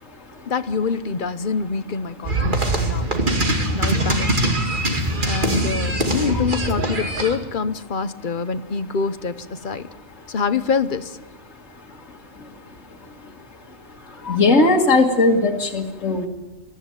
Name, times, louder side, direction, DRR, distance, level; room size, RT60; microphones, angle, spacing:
voice 1, 0.5-3.1 3.7-4.5 5.2-9.9 10.3-11.2, left 5 dB, 45° left, 12 dB, 0.9 m, -25 dB
sound 1, 2.2-7.4, right 1 dB, 35° right, 2.4 m, -22 dB
voice 2, 14.3-16.3, left 2 dB, 65° left, -2 dB, 2.1 m, -18 dB
22.5 x 15.5 x 9.6 m, 1.2 s
omnidirectional pair, 1.4 m